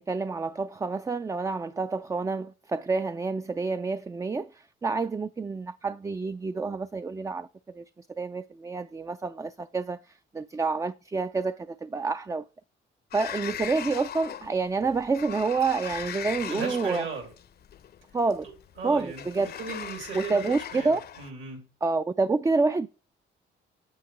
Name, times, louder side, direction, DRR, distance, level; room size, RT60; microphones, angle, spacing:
voice 1, 0.0-7.5 7.7-12.5 13.1-17.1 18.1-18.5 18.8-19.5 20.1-21.0 21.8-22.9, right 4 dB, 15° right, 0.3 m, -28 dB
Sliding door, 13.1-21.3, left 9 dB, 55° left, 0.6 m, -39 dB
voice 2, 16.5-17.2 18.8-21.6, right 5 dB, 70° right, 3.3 m, -37 dB
8.0 x 7.2 x 3.1 m
cardioid pair, 90°, 20 cm